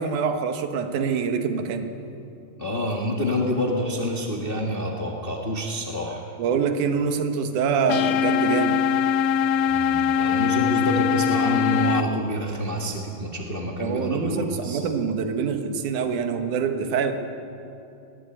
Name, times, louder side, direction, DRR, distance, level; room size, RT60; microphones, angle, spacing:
voice 1, 0.0-1.9 6.4-8.8 13.8-17.1, right 6 dB, 70° right, 7 dB, 2.6 m, -25 dB
voice 2, 2.6-6.3 9.7-14.8, left 1 dB, 25° left, 0 dB, 1.2 m, -27 dB
sound 1, 7.9-12.0, left 8 dB, 85° left, 2.4 m, -22 dB
20.5 x 17.0 x 8.9 m, 2.7 s
omnidirectional pair, 3.9 m